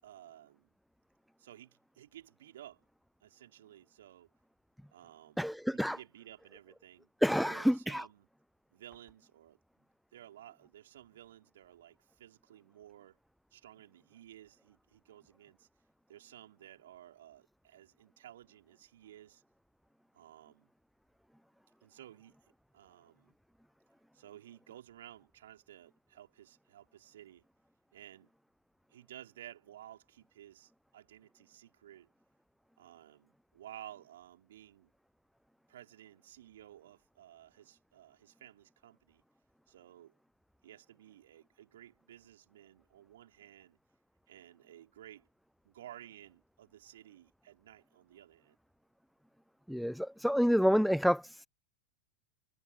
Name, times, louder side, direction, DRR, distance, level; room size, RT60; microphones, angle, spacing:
voice 1, 0.0-0.7 1.4-2.8 3.2-4.3 4.9-7.1 7.4-8.3 8.7-13.2 13.5-15.7 16.1-19.4 20.1-20.7 21.8-22.3 22.7-23.3 24.1-27.4 27.9-28.3 28.9-32.1 32.8-34.9 35.7-39.2 39.7-40.1 40.6-43.8 44.3-45.3 45.6-48.6, right 12 dB, 60° right, 4.1 m, -55 dB
voice 2, 5.4-6.0 7.2-8.1 49.7-51.5, equal, ahead, 0.4 m, -28 dB
figure-of-eight pair, 90°, 0 cm